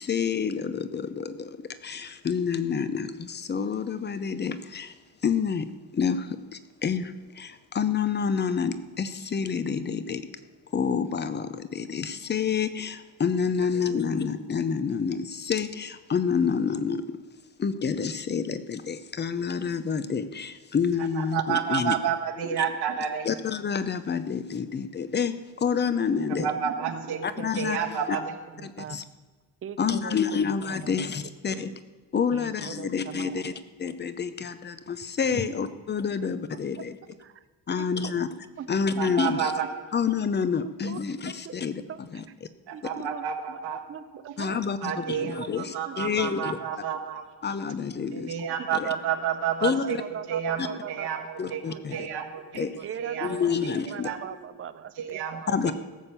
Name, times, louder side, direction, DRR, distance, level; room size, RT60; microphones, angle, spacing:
voice 1, 0.0-4.9 5.2-5.7 5.9-10.2 10.7-17.2 17.6-21.9 23.2-26.5 27.2-27.8 28.6-29.0 29.8-31.7 32.1-33.5 33.8-37.0 37.7-38.3 38.7-39.5 39.9-41.8 42.1-42.2 44.4-46.6 47.4-48.3 48.7-48.9 49.6-50.0 50.6-50.7 51.4-52.1 52.5-52.8 53.2-54.1 55.5-55.7, left 6 dB, 25° left, 12 dB, 0.6 m, -28 dB
voice 2, 21.1-23.3 26.4-27.2 27.5-28.3 39.0-39.7 42.7-43.8 44.2-44.3 44.8-47.2 48.1-50.0 50.3-53.3 53.6-53.7 54.0-54.2 55.0-55.7, right 8 dB, 75° right, 2 dB, 1.5 m, -30 dB
voice 3, 26.4-29.0 29.6-31.0 31.5-31.8 32.3-33.4 35.3-35.5 36.5-36.8 37.2-37.4 37.7-38.2 38.6-38.8 40.6-41.0 41.4-41.6 41.9-42.3 42.7-44.6 45.1-46.3 48.6-48.7 49.6-52.1 52.8-55.7, right 8 dB, 35° right, 14 dB, 0.5 m, -41 dB
16.5 x 7.3 x 6.8 m, 1.3 s
cardioid pair, 170°, 39 cm